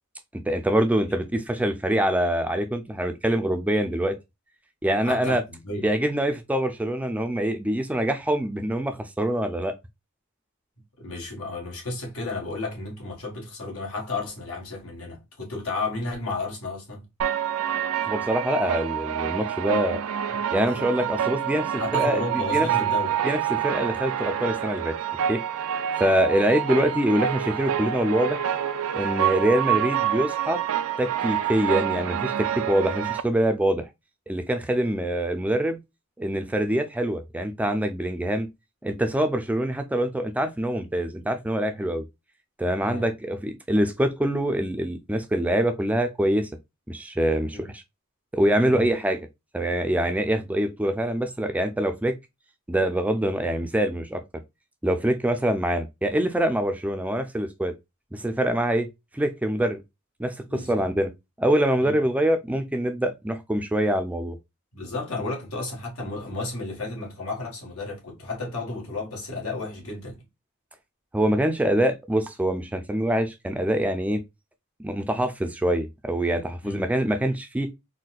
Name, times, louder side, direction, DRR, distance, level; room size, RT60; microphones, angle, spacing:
voice 1, 0.5-4.2 4.8-5.4 5.8-9.7 18.0-20.0 20.5-22.7 23.2-25.0 25.3-25.4 26.0-28.4 28.9-30.6 31.0-33.9 34.3-35.8 36.2-38.5 38.8-42.0 42.6-46.5 46.9-47.8 48.3-49.2 49.5-52.2 52.7-54.2 54.8-57.7 58.1-58.9 59.1-59.8 60.2-61.1 61.4-64.4 71.1-74.2 74.8-77.7, right 1 dB, 5° right, 0.3 m, -24 dB
voice 2, 1.0-1.4 5.0-5.9 11.0-17.0 21.8-23.2 42.8-43.1 47.5-47.7 48.7-48.9 60.5-60.9 61.8-61.9 64.7-70.2 76.6-76.9, left 3 dB, 85° left, 1.5 m, -33 dB
sound 1, 17.2-33.2, right 10 dB, 85° right, 0.4 m, -27 dB
4.0 x 2.2 x 2.3 m
head